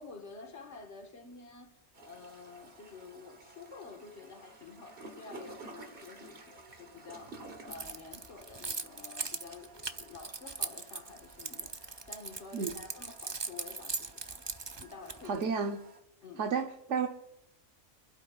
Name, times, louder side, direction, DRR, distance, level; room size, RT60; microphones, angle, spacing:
voice 1, 0.0-1.7 2.0-14.4 14.8-15.5 16.2-16.5, left 4 dB, 60° left, 1.9 m, -50 dB
sound 1, 1.9-16.0, right 2 dB, 45° right, 1.5 m, -53 dB
Keys jangling, 7.7-15.4, right 4 dB, 30° right, 0.5 m, -39 dB
voice 2, 15.2-15.8 16.4-17.1, right 5 dB, 70° right, 1.3 m, -31 dB
26.5 x 12.0 x 2.5 m
omnidirectional pair, 1.3 m